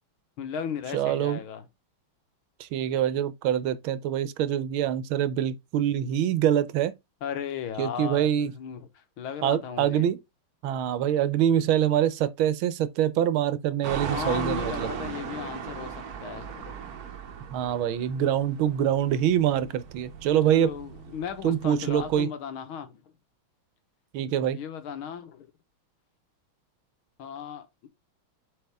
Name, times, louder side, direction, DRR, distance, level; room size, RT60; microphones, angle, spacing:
voice 1, 0.4-1.6 7.2-10.1 14.1-16.9 20.4-23.0 24.5-25.5 27.2-27.9, left 7 dB, 80° left, 1.9 m, -36 dB
voice 2, 0.9-1.4 2.6-6.9 7.8-8.5 9.4-10.2 10.6-14.9 17.5-20.7 21.4-22.3 24.1-24.6, right 10 dB, 80° right, 1.5 m, -25 dB
sound 1, 13.8-22.2, right 7 dB, 55° right, 1.2 m, -38 dB
7.8 x 4.1 x 3.4 m
omnidirectional pair, 2.3 m